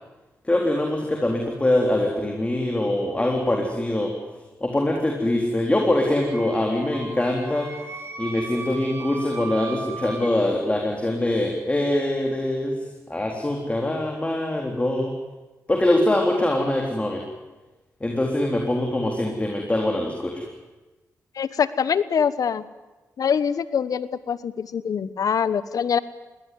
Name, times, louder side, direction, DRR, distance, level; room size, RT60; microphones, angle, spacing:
voice 1, 0.5-4.1 4.6-7.7 8.2-12.7 13.1-15.1 15.7-17.2 18.0-20.5, left 1 dB, 20° left, 1 dB, 4.0 m, -23 dB
Wind instrument woodwind instrument, 6.2-10.3, right 3 dB, 40° right, 3.9 m, -37 dB
voice 2, 21.3-22.6 23.2-26.0, left 7 dB, 70° left, 16 dB, 1.1 m, -24 dB
21.5 x 18.0 x 9.5 m, 1.1 s
cardioid pair, 60°, 6 cm